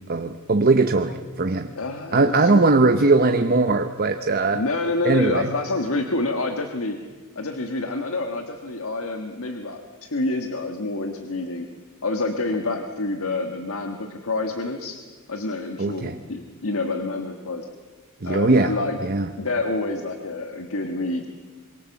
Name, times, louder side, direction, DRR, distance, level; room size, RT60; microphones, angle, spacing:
voice 1, 0.1-1.7 2.1-4.6 5.0-5.5 15.8-16.2 18.2-18.7 19.0-19.3, right 3 dB, 45° right, 7 dB, 0.9 m, -20 dB
voice 2, 1.7-3.1 4.5-7.0 7.3-11.7 12.0-15.0 15.3-17.7 18.2-19.0 19.4-21.3, left 2 dB, 65° left, 5 dB, 1.6 m, -28 dB
26.5 x 23.0 x 7.2 m, 1.5 s
head